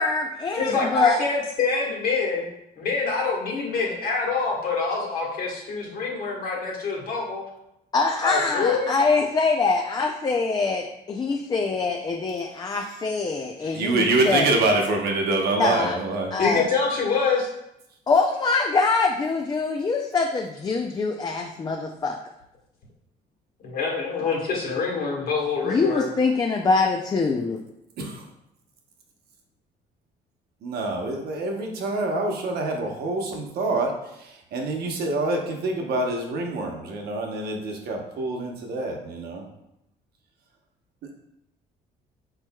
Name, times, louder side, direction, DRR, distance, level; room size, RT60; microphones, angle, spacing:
voice 1, 0.0-1.2 7.9-14.4 15.6-16.0 16.3-16.7 18.1-22.2 25.6-27.6, left 4 dB, 25° left, 2 dB, 0.4 m, -24 dB
voice 2, 0.5-2.5 2.8-7.4 8.2-8.9 13.6-13.8 16.4-17.5 23.6-26.1, left 4 dB, 60° left, -2 dB, 1.5 m, -26 dB
voice 3, 13.7-16.3 28.0-28.2 30.6-39.5, right 2 dB, 70° right, 1 dB, 0.9 m, -26 dB
4.5 x 4.4 x 2.3 m, 0.84 s
cardioid pair, 110°, 17 cm